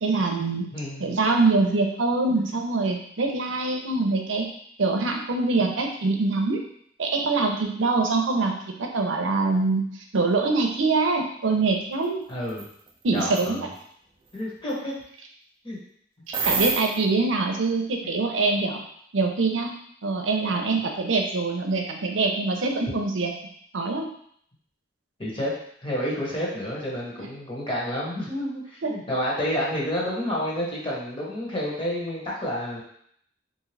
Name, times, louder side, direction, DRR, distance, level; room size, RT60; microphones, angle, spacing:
voice 1, 0.0-0.7 1.0-4.5 4.8-6.7 7.0-9.8 10.1-12.2 13.0-13.6 16.3-18.8 19.1-19.7 20.0-23.3 23.7-24.1 27.2-27.3 28.8-28.9, right 3 dB, 85° right, 3 dB, 0.6 m, -24 dB
voice 2, 0.7-1.1 12.3-12.7 13.1-13.7 14.3-14.9 15.6-15.8 25.2-25.5 25.8-28.6 28.9-32.8, equal, 30° left, -5 dB, 1.1 m, -29 dB
sound 1, 12.5-12.6 13.2-13.5 16.3-17.0, right 4 dB, 30° right, 0.5 m, -26 dB
3.6 x 2.7 x 3.2 m, 0.66 s
head